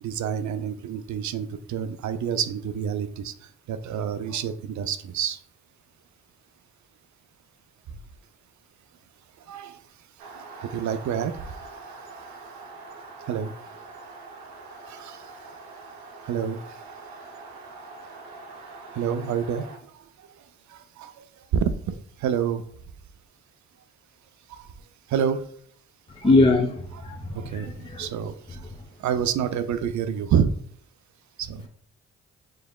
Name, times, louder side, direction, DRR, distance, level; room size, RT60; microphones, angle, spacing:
voice 1, 0.0-5.4 9.5-9.8 10.4-11.4 13.3-13.5 14.9-15.3 16.2-16.6 18.9-20.3 20.7-22.6 24.5-24.7 25.1-25.4 26.2-26.3 27.3-28.7 29.0-30.5 31.4-31.7, right 8 dB, 60° right, 10 dB, 0.5 m, -28 dB
sound 1, 10.2-19.8, right 3 dB, 85° right, 0.9 m, -44 dB
voice 2, 26.2-28.1, left 2 dB, 15° left, 1 dB, 0.8 m, -22 dB
5.1 x 3.4 x 2.3 m, 0.64 s
supercardioid pair, 50°, 32 cm